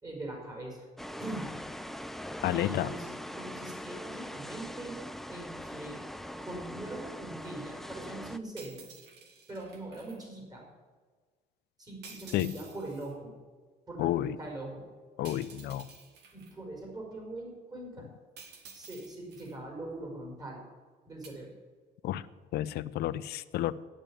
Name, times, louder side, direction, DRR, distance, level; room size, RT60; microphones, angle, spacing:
voice 1, 0.0-0.9 1.2-1.5 2.5-3.1 3.3-5.0 5.3-6.0 6.4-8.9 9.5-10.6 11.8-13.3 13.9-14.9 15.6-15.7 16.3-18.1 18.7-20.6 21.1-21.5, right 2 dB, 20° right, -1 dB, 4.9 m, -42 dB
sound 1, 1.0-8.4, equal, ahead, 0.4 m, -42 dB
voice 2, 2.4-2.9 12.3-12.6 14.0-14.4 15.2-15.9 22.0-22.3 22.5-23.7, left 13 dB, 70° left, 15 dB, 0.6 m, -31 dB
sound 2, 8.6-10.2 12.0-13.1 15.2-16.5 18.4-19.6 21.2-21.3, right 5 dB, 80° right, 2.0 m, -51 dB
9.0 x 8.9 x 8.7 m, 1.4 s
cardioid pair, 110°, 17 cm